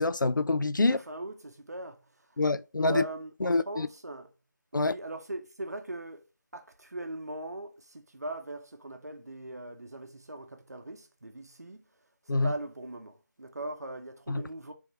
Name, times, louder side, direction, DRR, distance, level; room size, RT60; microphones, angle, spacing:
voice 1, 0.0-1.0 2.4-3.0 3.4-3.9 4.7-4.9 12.3-12.5 14.3-14.4, left 3 dB, 85° left, 0.4 m, -26 dB
voice 2, 0.8-2.4 2.8-4.3 4.7-6.2 6.5-11.8 12.2-14.7, right 1 dB, 55° right, 0.8 m, -40 dB
3.5 x 3.4 x 3.0 m
figure-of-eight pair, 170°, 10 cm